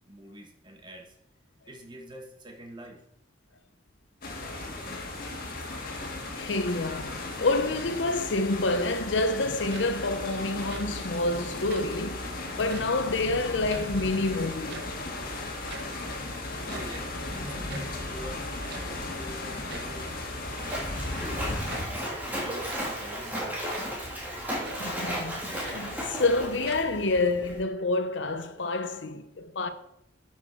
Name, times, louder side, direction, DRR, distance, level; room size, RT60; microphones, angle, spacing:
voice 1, 0.1-1.2 1.7-3.0 16.7-20.3 20.6-22.1 22.4-23.5, right 1 dB, 25° right, 1.3 m, -46 dB
sound 1, 4.2-21.8, left 2 dB, 50° left, 1.8 m, -36 dB
voice 2, 6.4-14.8 24.8-29.7, left 2 dB, 80° left, 0.8 m, -28 dB
sound 2, 9.5-10.2 10.5-11.1 11.6-12.0 12.6-13.1 13.4-14.3 14.5-15.1 15.4-15.5 15.7-16.0 16.5-18.0 18.7-19.0 19.7-20.1 20.7-21.0 21.7-22.0 22.5-23.1 23.7-24.0 24.6-25.0 25.4-26.3 26.6-27.2, right 3 dB, 60° right, 1.0 m, -45 dB
Splash splatter, 19.7-27.6, equal, 10° right, 2.6 m, -35 dB
11.0 x 6.0 x 4.5 m
head